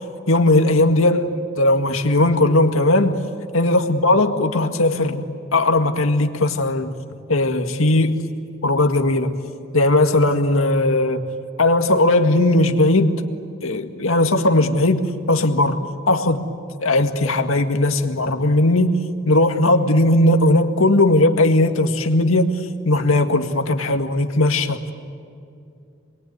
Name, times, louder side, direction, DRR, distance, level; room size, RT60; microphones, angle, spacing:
voice 1, 0.3-3.2 3.5-5.2 5.5-6.9 7.3-8.2 8.6-9.3 9.7-11.2 11.6-13.2 13.6-15.8 16.1-16.4 16.8-19.0 19.3-22.6 22.9-24.8, left 2 dB, 90° left, 5 dB, 2.0 m, -18 dB
28.0 x 22.0 x 9.6 m, 2.5 s
head